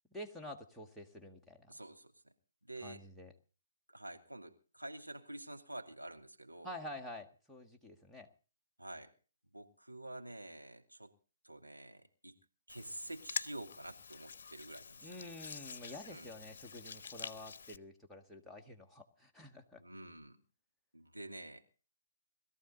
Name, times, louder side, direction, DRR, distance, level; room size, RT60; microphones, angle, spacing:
voice 1, 0.1-1.7 2.8-3.3 6.6-8.3 15.0-19.8, left 1 dB, ahead, -1 dB, 1.6 m, -49 dB
voice 2, 1.7-2.3 2.6-3.0 3.9-6.7 8.8-9.1 9.4-11.1 11.4-12.3 12.7-15.3 16.1-16.3 19.8-20.4 20.9-21.6, right 1 dB, 90° right, 3 dB, 2.5 m, -48 dB
Hands, 12.7-17.8, left 5 dB, 50° left, 1.0 m, -46 dB
21.0 x 14.0 x 4.0 m, 0.38 s
figure-of-eight pair, 130°, 0 cm